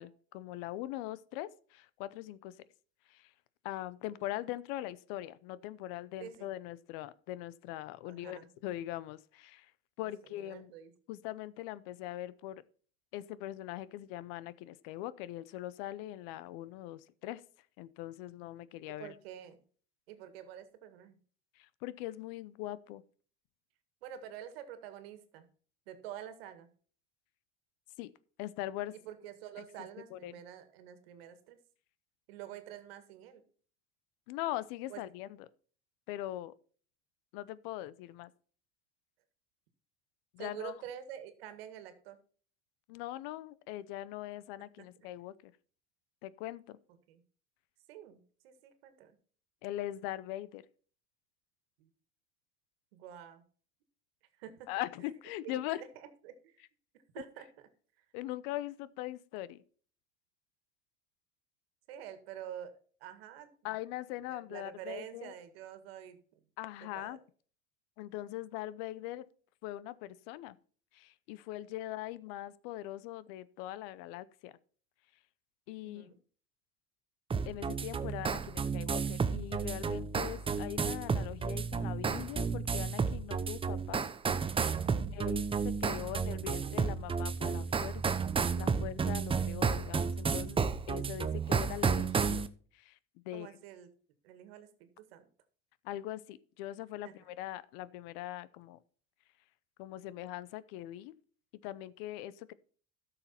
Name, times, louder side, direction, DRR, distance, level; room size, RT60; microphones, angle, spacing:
voice 1, 0.0-2.5 3.1-3.3 3.6-9.7 10.0-10.7 11.1-12.6 13.1-17.4 17.8-19.1 21.6-23.0 28.0-28.1 28.4-28.9 29.6-29.7 30.1-30.3 34.3-35.3 36.1-36.5 37.3-38.3 40.3-40.7 42.9-45.5 46.2-46.8 49.6-50.7 54.7-55.8 58.1-59.6 63.6-65.3 66.6-67.2 68.0-69.3 69.6-70.6 70.9-74.5 75.7-76.1 77.5-84.1 84.5-84.7 85.1-88.2 88.6-92.4 92.7-93.0 93.2-93.5 95.8-98.8 99.8-101.1 101.6-102.5, left 14 dB, 70° left, 0.7 m, -41 dB
voice 2, 8.1-8.5 10.0-10.9 18.1-18.3 18.9-19.6 20.1-21.2 24.0-25.5 25.9-26.7 28.9-31.6 32.3-33.4 34.9-35.0 40.4-42.2 44.8-44.9 47.1-47.2 47.9-49.2 51.8-51.9 52.9-53.4 54.3-55.1 55.4-56.6 56.9-57.7 58.0-58.1 61.9-62.7 63.0-63.7 64.3-66.4 66.9-67.2 75.8-76.2 85.0-85.4 93.3-93.9 94.2-95.3 97.0-97.1, right 10 dB, 80° right, 1.8 m, -48 dB
sound 1, 77.3-92.5, right 5 dB, 20° right, 0.7 m, -32 dB
12.5 x 6.7 x 4.3 m
supercardioid pair, 100°, 29 cm